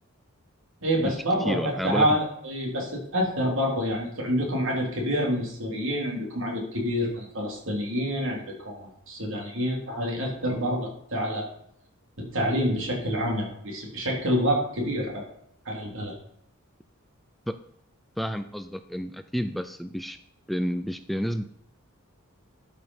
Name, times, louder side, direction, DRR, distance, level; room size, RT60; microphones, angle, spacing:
voice 1, 0.8-11.5 12.2-15.2 15.6-16.1, equal, 65° right, -1 dB, 3.3 m, -27 dB
voice 2, 1.4-2.1 17.5-17.6 18.2-20.2 20.5-21.4, equal, ahead, 9 dB, 0.4 m, -30 dB
12.0 x 5.5 x 5.5 m, 0.74 s
head